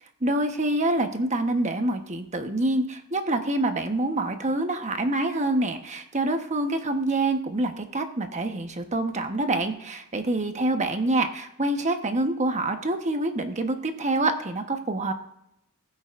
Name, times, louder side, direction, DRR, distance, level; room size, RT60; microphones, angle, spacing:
voice 1, 0.2-15.1, right 2 dB, 35° right, 6 dB, 1.1 m, -26 dB
21.0 x 8.6 x 2.6 m, 0.80 s
head